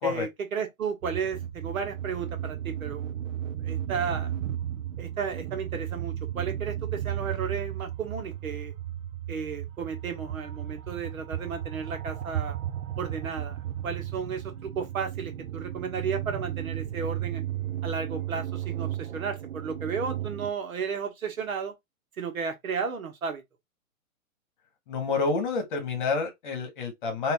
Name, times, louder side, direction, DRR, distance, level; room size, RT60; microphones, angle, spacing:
voice 1, 0.0-3.2 3.6-4.3 5.0-8.7 9.3-12.6 13.0-13.6 13.8-17.4 17.8-21.8 22.2-23.4, right 6 dB, 80° right, 1.2 m, -33 dB
sound 1, 1.0-20.5, right 11 dB, 65° right, 0.6 m, -34 dB
voice 2, 24.9-27.3, left 4 dB, 35° left, 1.2 m, -28 dB
2.8 x 2.5 x 3.5 m
hypercardioid pair, 150°, 41 cm